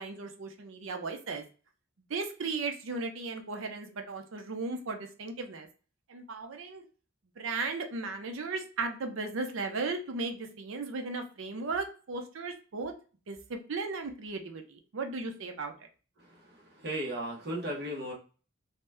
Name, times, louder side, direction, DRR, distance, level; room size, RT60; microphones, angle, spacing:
voice 1, 0.0-1.4 2.1-5.7 6.1-6.8 7.4-12.9 13.3-15.7, right 3 dB, 70° right, 6 dB, 0.5 m, -36 dB
voice 2, 16.2-18.1, right 1 dB, 50° right, -1 dB, 0.9 m, -36 dB
2.8 x 2.1 x 3.3 m, 0.36 s
head